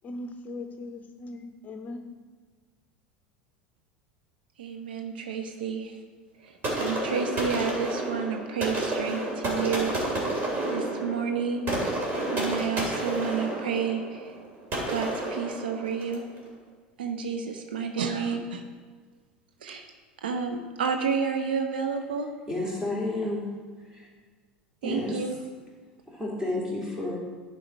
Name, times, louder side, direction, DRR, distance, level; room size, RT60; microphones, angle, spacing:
voice 1, 0.0-2.1, left 2 dB, 30° left, 6 dB, 0.7 m, -39 dB
voice 2, 4.6-5.9 6.4-9.9 10.7-11.7 12.3-14.3 14.9-16.2 17.0-18.6 19.6-19.8 20.2-22.3 24.8-25.4, right 6 dB, 70° right, 5 dB, 0.7 m, -30 dB
sound 1, 6.6-16.3, right 1 dB, 35° right, 2.6 m, -30 dB
voice 3, 22.5-23.5 23.8-24.1 24.8-25.3 26.1-27.2, left 2 dB, 15° right, -4 dB, 2.7 m, -31 dB
11.0 x 4.6 x 4.6 m, 1.5 s
figure-of-eight pair, 75°, 5 cm